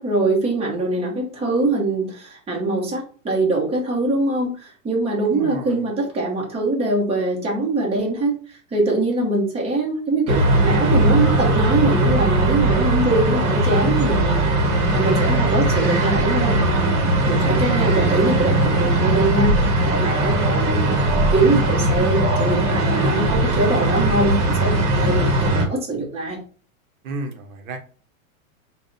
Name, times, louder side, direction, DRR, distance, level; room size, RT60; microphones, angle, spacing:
voice 1, 0.0-14.4 14.9-16.6 17.3-19.5 19.8-21.0 21.3-26.4, right 2 dB, 15° right, -2 dB, 1.0 m, -23 dB
voice 2, 5.3-5.9 15.0-15.7 17.2-18.1 27.0-27.8, right 2 dB, 75° right, 5 dB, 0.8 m, -34 dB
sound 1, 10.3-25.6, right 1 dB, 40° right, 1.1 m, -19 dB
3.6 x 2.3 x 3.9 m, 0.40 s
supercardioid pair, 140°, 42 cm